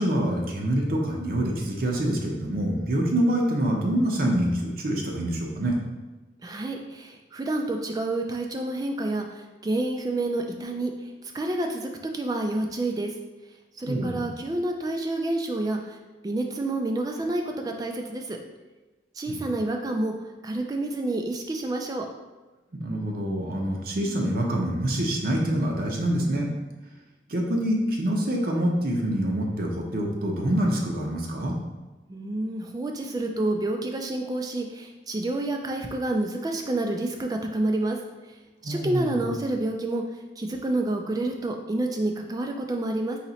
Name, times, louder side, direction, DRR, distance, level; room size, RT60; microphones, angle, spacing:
voice 1, 0.0-5.8 13.9-14.3 19.3-19.4 22.7-26.5 27.3-31.6 38.6-39.3, right 1 dB, 55° right, 0 dB, 0.7 m, -26 dB
voice 2, 6.4-10.9 11.3-13.1 13.8-15.8 16.2-18.4 19.2-20.1 20.4-22.1 32.1-38.0 38.6-40.0 40.4-43.2, right 2 dB, 20° right, 2 dB, 0.3 m, -28 dB
4.2 x 2.9 x 4.0 m, 1.2 s
head